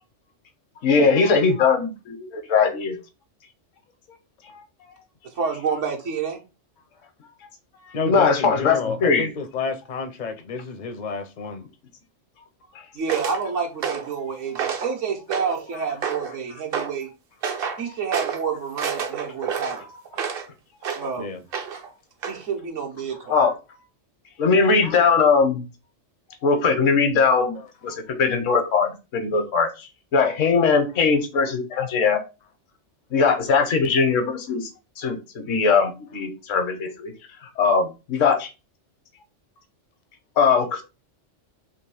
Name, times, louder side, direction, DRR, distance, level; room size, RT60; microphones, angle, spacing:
voice 1, 0.8-3.0 8.0-9.3 23.3-23.5 24.4-25.6 26.4-27.6 27.8-32.2 33.1-34.7 35.0-37.1 37.6-38.5 40.4-40.8, left 5 dB, 85° left, 1.2 m, -20 dB
voice 2, 5.2-6.4 12.9-17.1 17.8-19.8 20.9-21.4 22.3-23.4, right 6 dB, 75° right, 1.4 m, -29 dB
voice 3, 7.9-11.6 15.7-15.9 16.3-16.4 21.2-21.4 24.8-24.9 33.5-33.6, left 4 dB, 50° left, 0.5 m, -31 dB
sound 1, 13.1-13.4 13.8-14.2 14.6-14.9 15.3-15.7 16.0-16.4 16.7-17.0 17.4-17.8 18.1-18.4 18.8-20.5 20.8-21.1 21.5-21.9 22.2-22.4, right 7 dB, 55° right, 0.8 m, -29 dB
3.5 x 3.0 x 4.7 m
omnidirectional pair, 1.3 m